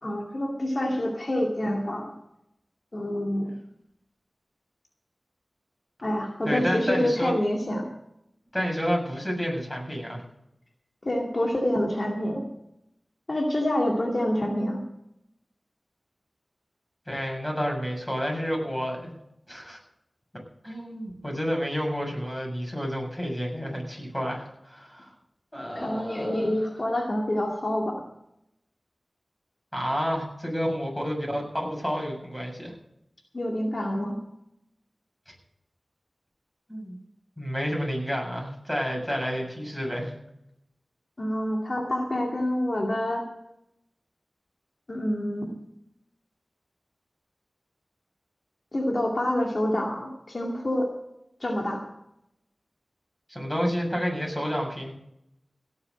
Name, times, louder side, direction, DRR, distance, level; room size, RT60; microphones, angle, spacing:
voice 1, 0.0-2.0 2.9-3.5 6.0-7.9 11.0-12.4 13.3-14.8 25.7-28.0 33.3-34.2 41.2-43.3 44.9-45.5 48.7-50.9 51.4-51.8, left 1 dB, 55° left, 0 dB, 2.4 m, -27 dB
voice 2, 6.5-7.3 8.5-10.2 17.1-19.1 19.5-19.8 20.6-25.1 25.5-26.7 29.7-32.7 35.3-35.4 36.7-37.0 37.4-40.1 53.3-54.9, equal, 10° left, 0 dB, 7.3 m, -30 dB
17.5 x 7.2 x 7.8 m, 0.80 s
wide cardioid pair, 50°, 0 cm